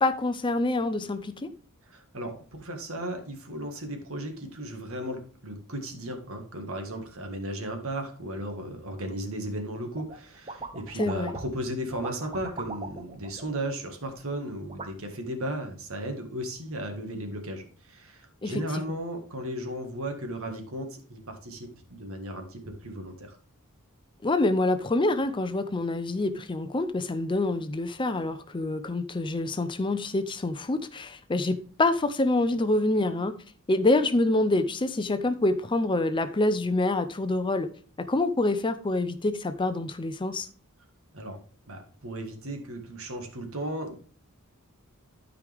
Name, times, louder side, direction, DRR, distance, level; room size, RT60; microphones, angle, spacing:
voice 1, 0.0-1.5 11.0-11.3 18.4-19.0 24.2-33.3 33.7-37.7 38.1-40.5, left 2 dB, 20° left, 0.5 m, -26 dB
voice 2, 1.9-23.3 41.1-41.4 41.7-43.9, right 1 dB, 65° right, 1.7 m, -35 dB
sound 1, 9.9-10.2 10.5-11.6 11.9-14.1 14.7-14.9, right 3 dB, 25° right, 0.8 m, -40 dB
12.5 x 5.0 x 3.4 m
head